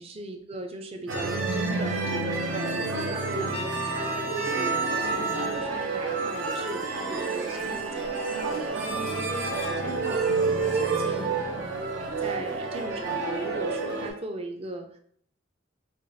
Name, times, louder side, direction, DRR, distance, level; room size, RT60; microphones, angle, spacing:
voice 1, 0.0-3.0 3.4-8.3 8.5-11.7 12.2-15.0, right 2 dB, 30° right, 5 dB, 0.4 m, -39 dB
sound 1, 1.1-14.1, right 3 dB, 80° right, 0.6 m, -29 dB
Trumpet, 3.5-5.8, left 3 dB, 30° left, 0.4 m, -38 dB
4.8 x 2.3 x 2.6 m, 0.62 s
head